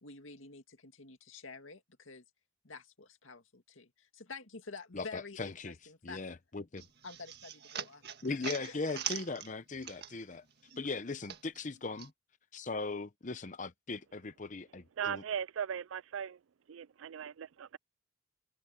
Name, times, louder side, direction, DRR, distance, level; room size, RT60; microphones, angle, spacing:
voice 1, 0.0-2.2 2.6-6.2 7.0-8.8, left 4 dB, 85° left, 2.2 m, -49 dB
voice 2, 4.9-5.7 6.0-6.9 8.2-10.4 10.8-12.1 12.5-15.2, left 3 dB, 40° left, 0.8 m, -39 dB
sound 1, 6.8-10.4 10.7-12.1, right 9 dB, 55° right, 1.8 m, -42 dB
voice 3, 15.0-16.4 16.7-17.8, right 8 dB, 85° right, 0.4 m, -38 dB
head